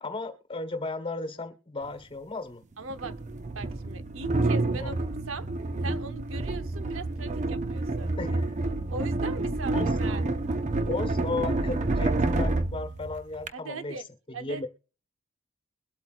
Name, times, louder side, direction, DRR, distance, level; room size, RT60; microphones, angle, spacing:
voice 1, 0.0-2.6 4.8-4.9 8.2-8.6 9.7-10.1 10.8-14.0 14.3-14.7, left 3 dB, 25° left, 1.4 m, -35 dB
sound 1, 1.8-1.9 2.9-13.5, right 2 dB, 35° right, 0.6 m, -29 dB
voice 2, 2.8-5.5 5.8-8.1 8.9-10.3 13.5-14.1 14.3-14.7, right 3 dB, 85° right, 0.9 m, -39 dB
22.0 x 8.2 x 2.5 m
head